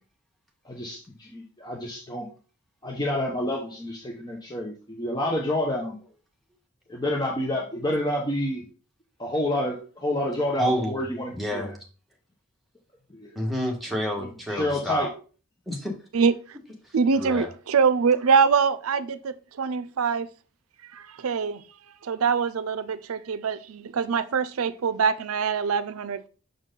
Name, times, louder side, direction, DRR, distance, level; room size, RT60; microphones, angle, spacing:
voice 1, 0.6-2.3 2.8-6.0 6.9-8.6 9.2-11.7 13.1-13.3 14.2-15.1, left 1 dB, 20° left, 1.0 m, -29 dB
voice 2, 10.6-11.0 11.3-11.7 13.3-15.1 15.7-15.9 17.2-17.5, equal, ahead, 1.5 m, -28 dB
voice 3, 16.9-20.3 20.9-21.6 22.0-26.3, right 6 dB, 90° right, 0.5 m, -24 dB
6.6 x 4.5 x 3.8 m
head